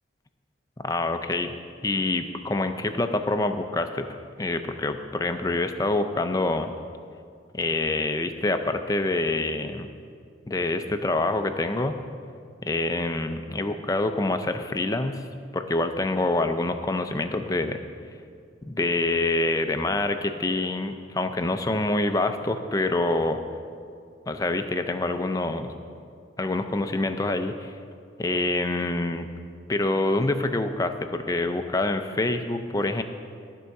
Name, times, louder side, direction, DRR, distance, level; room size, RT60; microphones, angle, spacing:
voice 1, 0.8-1.5 1.8-4.1 4.4-6.7 7.5-9.9 10.5-11.9 12.6-15.2 15.5-17.8 18.6-23.4 24.3-25.7 26.4-27.7 28.2-29.3 29.7-33.0, left 2 dB, 20° left, 8 dB, 0.4 m, -26 dB
13.5 x 4.6 x 6.5 m, 2.3 s
head